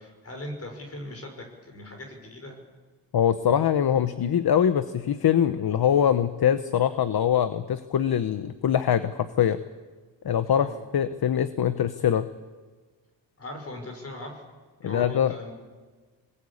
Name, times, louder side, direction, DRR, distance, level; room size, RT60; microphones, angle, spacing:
voice 1, 0.0-2.6 10.5-10.8 13.4-14.4 14.8-15.5, left 1 dB, 30° left, 3 dB, 5.4 m, -39 dB
voice 2, 3.1-9.6 10.2-12.3 14.8-15.4, left 9 dB, 55° left, 12 dB, 0.9 m, -23 dB
27.0 x 21.0 x 8.6 m, 1.4 s
wide cardioid pair, 180°, 46 cm